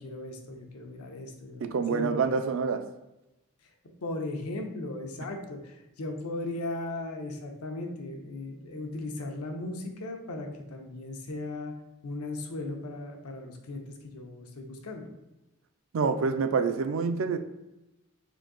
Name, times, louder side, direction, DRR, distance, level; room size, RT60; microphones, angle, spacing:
voice 1, 0.0-2.3 4.0-11.7 12.0-15.1, left 2 dB, 85° left, 0.7 m, -37 dB
voice 2, 1.6-2.9 15.9-17.4, right 5 dB, 60° right, 0.3 m, -27 dB
3.8 x 2.6 x 3.7 m
head